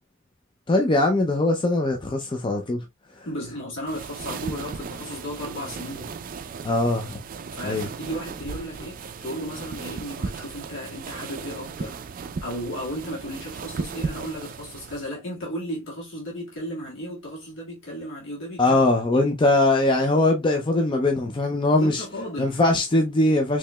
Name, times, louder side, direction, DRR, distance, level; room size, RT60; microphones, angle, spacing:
voice 1, 0.7-2.8 6.6-7.2 7.6-7.9 18.6-22.0 22.4-23.6, left 2 dB, 25° left, 0.4 m, -21 dB
voice 2, 3.3-6.1 7.5-12.0 12.4-18.8 19.1-19.3 21.7-22.6, equal, 70° left, 1.8 m, -34 dB
sound 1, 3.9-15.0, right 5 dB, 45° right, 0.4 m, -36 dB
4.6 x 3.0 x 2.2 m
head